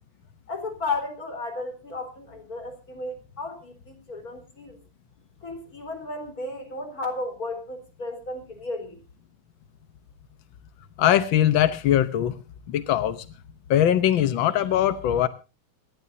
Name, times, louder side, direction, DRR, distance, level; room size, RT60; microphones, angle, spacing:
voice 1, 0.5-4.8 5.4-9.0, left 2 dB, 30° left, 4 dB, 4.5 m, -34 dB
voice 2, 11.0-12.4 12.7-13.2 13.7-15.3, left 11 dB, 75° left, 12 dB, 1.1 m, -21 dB
26.5 x 11.5 x 2.7 m, 0.32 s
omnidirectional pair, 3.4 m